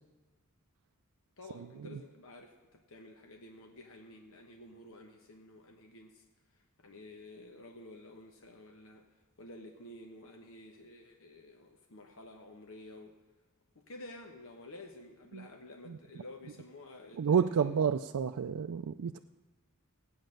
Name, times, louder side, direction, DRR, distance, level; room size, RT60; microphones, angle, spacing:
voice 1, 1.4-6.2 6.8-9.0 9.4-13.1 13.7-17.7, left 2 dB, 65° left, 3 dB, 1.1 m, -51 dB
voice 2, 17.1-19.2, right 7 dB, 80° right, 7 dB, 0.4 m, -30 dB
15.5 x 9.2 x 6.5 m, 1.3 s
head